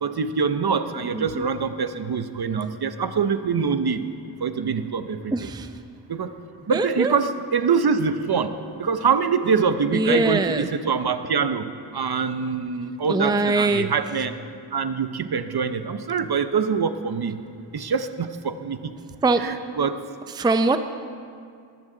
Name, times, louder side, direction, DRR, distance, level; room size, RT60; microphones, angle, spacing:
voice 1, 0.0-4.1 4.4-5.3 6.1-6.3 6.7-14.4 14.7-17.4 17.7-18.9 19.4-20.1, right 5 dB, 55° right, 10 dB, 0.8 m, -24 dB
voice 2, 1.1-1.5 5.3-5.7 6.7-7.1 9.9-10.7 13.1-13.9 19.2-19.4 20.4-20.8, right 3 dB, 10° right, 9 dB, 0.5 m, -22 dB
19.5 x 14.0 x 3.9 m, 2.3 s
wide cardioid pair, 105°, 47 cm